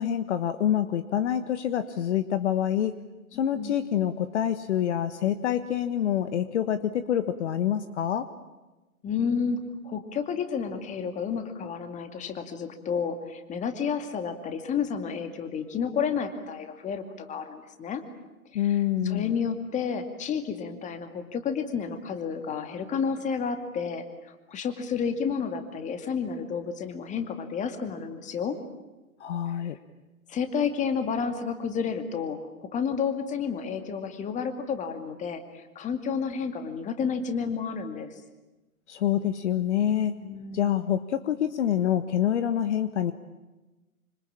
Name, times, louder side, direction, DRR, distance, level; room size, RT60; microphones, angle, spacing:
voice 1, 0.0-2.9 3.3-8.3 18.5-19.3 29.2-29.8 38.9-40.2 40.5-43.1, left 10 dB, 50° left, 12 dB, 1.4 m, -26 dB
voice 2, 9.0-18.0 18.5-18.8 19.0-28.6 30.3-38.1 40.2-40.8, left 6 dB, 15° left, 8 dB, 2.3 m, -31 dB
26.0 x 25.5 x 8.8 m, 1.1 s
hypercardioid pair, 130°, 43 cm